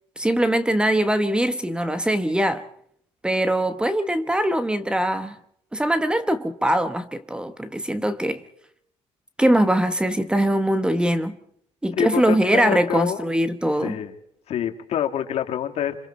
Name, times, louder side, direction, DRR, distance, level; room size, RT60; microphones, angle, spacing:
voice 1, 0.2-2.7 3.2-5.3 5.7-8.4 9.4-11.4 11.8-14.0, right 1 dB, 10° right, 1.2 m, -22 dB
voice 2, 11.9-13.3 13.8-14.1 14.5-16.0, left 10 dB, 65° left, 2.2 m, -26 dB
26.5 x 26.0 x 4.3 m
cardioid pair, 145°, 11 cm